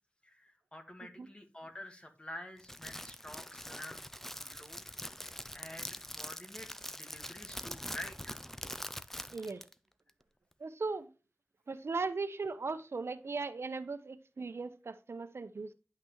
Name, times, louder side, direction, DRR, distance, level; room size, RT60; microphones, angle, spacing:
voice 1, 0.2-4.0 4.3-4.9 5.5-8.4, left 1 dB, 25° left, 1.8 m, -48 dB
Crackle, 2.6-9.7, equal, 10° left, 0.5 m, -44 dB
voice 2, 9.3-9.6 10.6-11.1 11.7-15.7, right 4 dB, 80° right, 0.8 m, -38 dB
10.5 x 6.0 x 3.1 m
wide cardioid pair, 80°, 4 cm